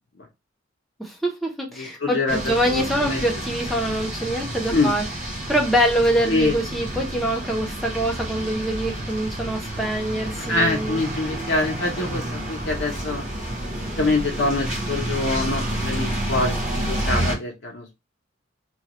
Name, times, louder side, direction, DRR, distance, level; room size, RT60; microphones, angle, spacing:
voice 1, 1.0-5.0 5.5-11.0, right 1 dB, ahead, 0.7 m, -24 dB
voice 2, 1.8-3.2 4.7-4.9 6.3-6.5 10.5-13.2 14.0-18.0, left 2 dB, 55° left, 0.7 m, -25 dB
sound 1, 2.3-17.4, right 1 dB, 40° right, 1.2 m, -29 dB
3.0 x 2.3 x 2.9 m
head